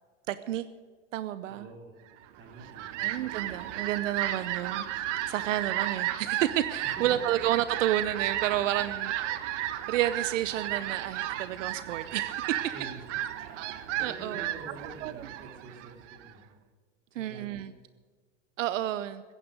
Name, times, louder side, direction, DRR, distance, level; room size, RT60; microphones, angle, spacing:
voice 1, 0.3-0.7 1.1-1.7 3.0-12.6 14.0-14.7 15.0-15.3 17.1-17.7 18.6-19.2, right 13 dB, 85° right, 14 dB, 0.8 m, -31 dB
voice 2, 1.5-2.0 2.4-3.0 6.8-7.4 12.7-16.6 17.2-17.7, right 3 dB, 30° right, 2 dB, 4.1 m, -47 dB
Fowl, 2.4-16.3, right 13 dB, 70° right, 1.3 m, -34 dB
15.0 x 10.0 x 9.2 m, 1.4 s
supercardioid pair, 120°, 37 cm